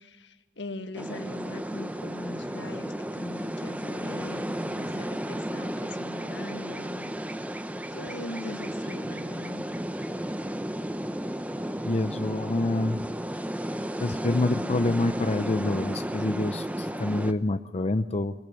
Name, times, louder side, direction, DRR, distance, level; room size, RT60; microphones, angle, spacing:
voice 1, 0.0-7.3 7.9-9.6, left 2 dB, 80° left, 8 dB, 1.6 m, -41 dB
sound 1, 0.9-17.3, equal, 10° right, 0.7 m, -33 dB
voice 2, 11.8-13.1 14.0-18.3, left 2 dB, 35° left, 9 dB, 0.6 m, -27 dB
22.5 x 21.5 x 6.9 m, 1.2 s
head